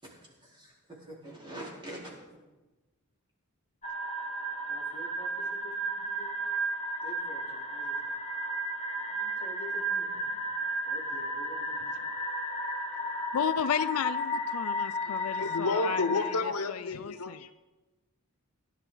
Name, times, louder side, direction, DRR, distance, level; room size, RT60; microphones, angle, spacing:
voice 1, 0.0-2.4 4.7-6.3 7.0-8.1 8.9-12.1 12.4-12.5 14.7-14.8, equal, 20° right, -4 dB, 3.8 m, -48 dB
sound 1, 3.8-16.4, equal, 30° left, 1.4 m, -33 dB
voice 2, 13.3-17.4, left 8 dB, 70° left, 14 dB, 0.4 m, -34 dB
voice 3, 15.1-17.5, left 3 dB, 85° left, 10 dB, 0.9 m, -31 dB
17.5 x 11.0 x 3.9 m, 1.1 s
head